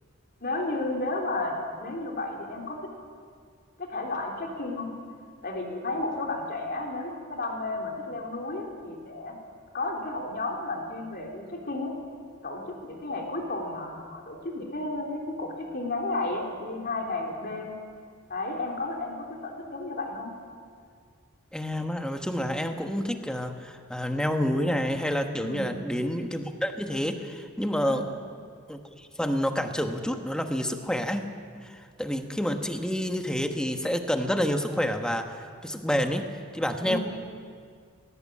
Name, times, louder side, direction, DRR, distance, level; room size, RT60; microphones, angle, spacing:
voice 1, 0.4-2.9 3.8-4.9 5.4-9.4 9.7-11.9 12.4-17.7 18.3-20.3 25.4-25.8 27.8-28.1 36.8-37.0, left 2 dB, 45° left, 0 dB, 3.6 m, -33 dB
voice 2, 21.5-28.0 28.7-31.2 31.5-37.0, equal, 5° left, 5 dB, 1.2 m, -29 dB
20.0 x 17.5 x 8.6 m, 2.1 s
head